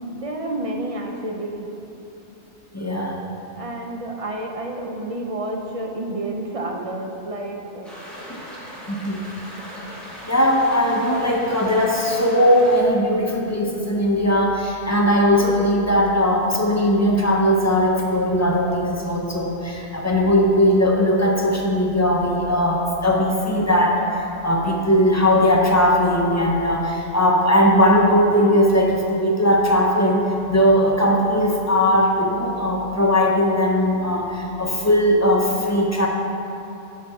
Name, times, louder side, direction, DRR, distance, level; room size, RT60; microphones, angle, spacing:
voice 1, 0.0-1.7 2.8-2.9 3.5-8.1, right 1 dB, 35° right, 1 dB, 0.6 m, -30 dB
voice 2, 2.7-3.2 8.3-8.4 8.9-9.2 10.3-36.1, equal, 20° left, -1 dB, 0.6 m, -19 dB
sound 1, 7.8-12.8, equal, ahead, 1.9 m, -38 dB
10.0 x 4.4 x 4.8 m, 2.9 s
omnidirectional pair, 1.2 m